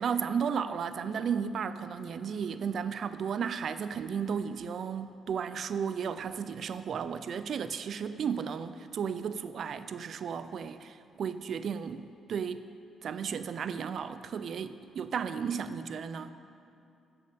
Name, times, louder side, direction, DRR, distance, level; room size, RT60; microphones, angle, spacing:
voice 1, 0.0-12.7 13.0-16.3, right 7 dB, 60° right, 13 dB, 0.4 m, -34 dB
8.4 x 6.8 x 6.8 m, 2.5 s
cardioid pair, 90°, 0 cm